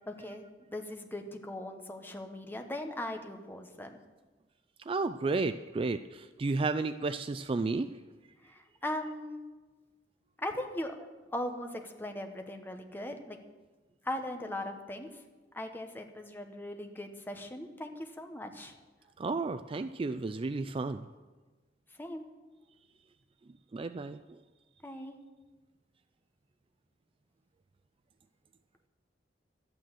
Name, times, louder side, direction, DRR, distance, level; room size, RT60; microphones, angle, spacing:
voice 1, 0.1-4.0 8.4-9.4 10.4-13.4 14.0-15.2 15.5-18.7 22.0-22.3 24.8-25.1, left 1 dB, 10° left, 5 dB, 1.1 m, -39 dB
voice 2, 4.9-7.9 19.2-21.1 23.7-24.2, right 3 dB, 30° right, 11 dB, 0.3 m, -32 dB
12.5 x 8.9 x 7.6 m, 1.3 s
head